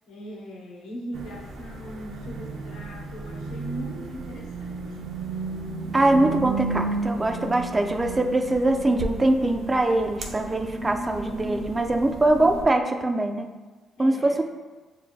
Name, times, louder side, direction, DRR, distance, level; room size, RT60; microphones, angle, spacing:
voice 1, 0.1-5.2 14.0-14.4, equal, 85° left, -1 dB, 1.0 m, -39 dB
sound 1, 1.1-12.6, right 3 dB, 75° right, 0.7 m, -33 dB
voice 2, 5.9-13.5 14.0-14.4, right 2 dB, 25° right, 5 dB, 0.4 m, -22 dB
7.0 x 2.8 x 2.3 m, 1.3 s
cardioid pair, 90°, 0 cm